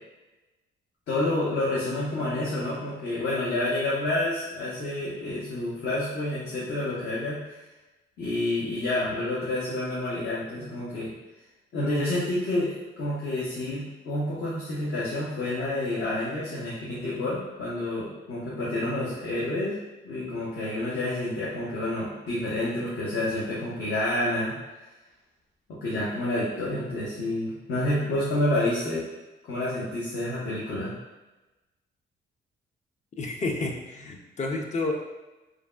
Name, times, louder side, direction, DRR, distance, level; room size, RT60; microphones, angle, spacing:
voice 1, 1.1-7.4 8.2-11.1 11.7-19.7 20.0-24.5 25.7-29.0 29.5-30.9, left 1 dB, 60° left, -8 dB, 0.8 m, -29 dB
voice 2, 33.2-34.9, left 3 dB, 35° left, 2 dB, 0.4 m, -30 dB
3.2 x 2.4 x 2.2 m, 1.1 s
cardioid pair, 90°, 20 cm